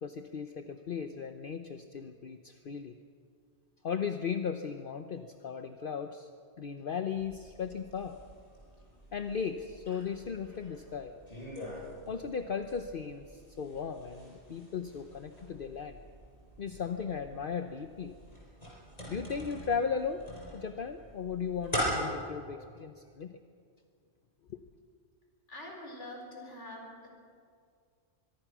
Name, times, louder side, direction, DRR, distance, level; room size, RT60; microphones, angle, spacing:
voice 1, 0.0-3.0 3.8-6.3 6.6-8.2 9.1-11.1 12.1-16.0 16.6-18.1 19.1-20.3 20.5-23.4 24.5-24.6, left 6 dB, 55° left, 7 dB, 1.0 m, -36 dB
sound 1, 7.1-22.1, equal, 35° left, 7.2 m, -43 dB
voice 2, 25.5-27.1, left 1 dB, 85° left, 1 dB, 5.0 m, -45 dB
24.0 x 23.5 x 6.2 m, 2.2 s
omnidirectional pair, 1.2 m